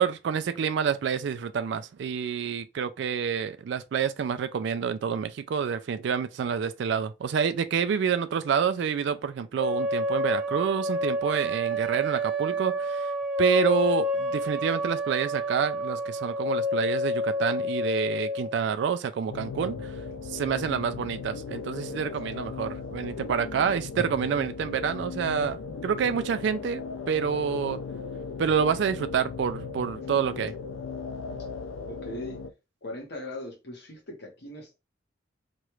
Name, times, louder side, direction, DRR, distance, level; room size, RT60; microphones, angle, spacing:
voice 1, 0.0-13.1 13.4-19.9 20.3-25.6 25.8-27.8 28.4-30.5, right 7 dB, 60° right, 0.3 m, -28 dB
sound 1, 9.6-18.5, left 1 dB, ahead, 0.5 m, -28 dB
sound 2, 19.3-32.5, left 4 dB, 85° left, 0.4 m, -37 dB
voice 2, 31.9-32.4 32.8-34.7, left 1 dB, 55° left, 1.1 m, -39 dB
3.0 x 2.4 x 3.0 m
head